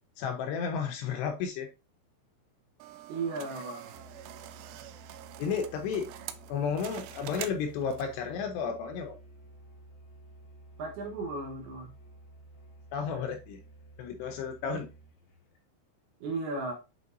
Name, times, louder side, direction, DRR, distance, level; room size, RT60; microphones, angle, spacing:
voice 1, 0.2-1.7 5.4-6.1 6.5-9.1 12.9-13.6 14.0-14.9, left 6 dB, 80° left, 4 dB, 2.5 m, -32 dB
sound 1, 2.8-8.3, right 13 dB, 85° right, 3.0 m, -45 dB
voice 2, 3.1-3.9 10.8-11.9 16.2-16.7, right 3 dB, 70° right, 0 dB, 2.7 m, -35 dB
Musical instrument, 3.8-15.5, right 2 dB, 55° left, 1.3 m, -53 dB
8.2 x 4.5 x 2.6 m, 0.29 s
omnidirectional pair, 5.4 m